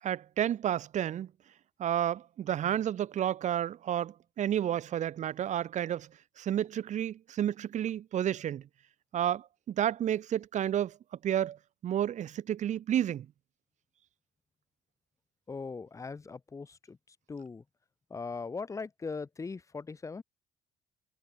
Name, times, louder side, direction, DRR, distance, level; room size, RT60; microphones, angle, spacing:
voice 1, 0.0-1.3 1.8-6.1 6.4-8.6 9.1-11.0 11.2-11.6 11.8-13.3, right 10 dB, 45° right, 0.6 m, -31 dB
voice 2, 15.5-17.0 17.3-17.6 18.1-20.2, left 4 dB, 20° left, 0.7 m, -39 dB
cardioid pair, 110°, 17 cm